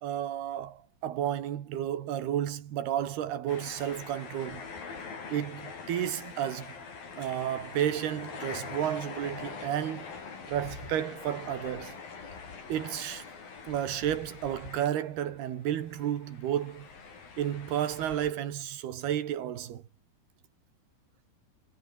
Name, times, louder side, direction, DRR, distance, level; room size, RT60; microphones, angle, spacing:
voice 1, 0.0-4.6 5.3-6.8 7.2-10.1 10.5-12.0 12.7-13.3 13.7-16.9 17.4-19.8, right 11 dB, 90° right, 4.1 m, -32 dB
sound 1, 3.5-15.4 15.6-18.3, left 5 dB, 65° left, 7.1 m, -44 dB
omnidirectional pair, 4.4 m